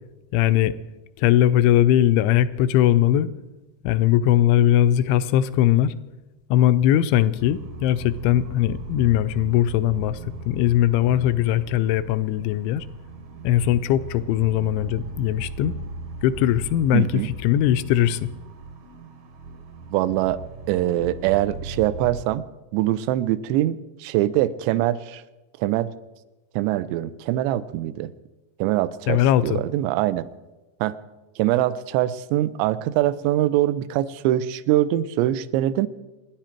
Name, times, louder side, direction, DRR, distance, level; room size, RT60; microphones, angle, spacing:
voice 1, 0.3-0.7 1.2-3.3 3.8-6.0 6.5-10.2 10.5-12.9 13.4-15.8 16.2-17.1 17.4-18.3 29.1-29.6, left 12 dB, 85° left, 13 dB, 3.0 m, -20 dB
sound 1, 7.4-22.3, right 3 dB, 60° right, 2.1 m, -38 dB
voice 2, 16.9-17.3 19.9-20.4 20.7-22.4 22.7-25.2 25.6-25.9 26.6-28.1 28.6-30.2 30.8-31.0 31.4-35.9, right 14 dB, 80° right, 15 dB, 2.8 m, -23 dB
28.5 x 10.5 x 4.5 m, 1.1 s
omnidirectional pair, 5.2 m